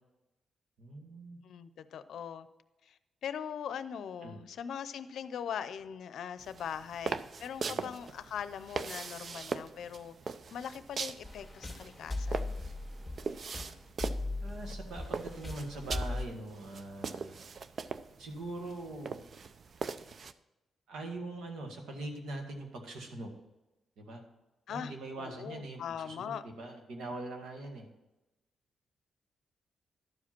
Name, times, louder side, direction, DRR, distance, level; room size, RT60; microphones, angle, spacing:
voice 1, 0.8-1.4 4.2-4.4 7.6-7.9 14.4-17.4 18.2-19.2 20.9-23.3 24.0-24.2 24.7-27.9, right 2 dB, 90° right, 3 dB, 1.8 m, -42 dB
voice 2, 1.4-2.5 2.8-10.2 10.5-12.5 24.7-26.4, left 8 dB, 75° left, 13 dB, 0.6 m, -41 dB
sound 1, 6.4-20.3, right 5 dB, 50° right, 0.4 m, -41 dB
sound 2, 11.2-16.2, left 2 dB, 5° right, 2.2 m, -38 dB
12.0 x 5.0 x 6.0 m, 1.0 s
cardioid pair, 110°, 0 cm